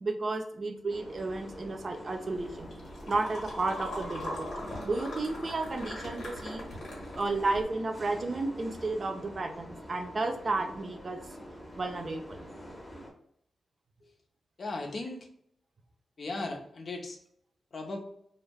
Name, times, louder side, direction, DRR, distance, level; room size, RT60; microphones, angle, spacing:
voice 1, 0.0-2.7 3.1-6.6 7.2-11.2 11.8-12.4, right 3 dB, 50° right, 4 dB, 0.4 m, -32 dB
sound 1, 0.9-13.1, equal, 20° left, 0.7 m, -46 dB
sound 2, 2.4-7.6, left 1 dB, 80° left, 0.9 m, -41 dB
voice 2, 14.6-15.3 16.2-17.2 17.7-18.0, left 2 dB, 55° left, 2 dB, 0.5 m, -37 dB
2.3 x 2.0 x 3.3 m, 0.71 s
cardioid pair, 55°, 0 cm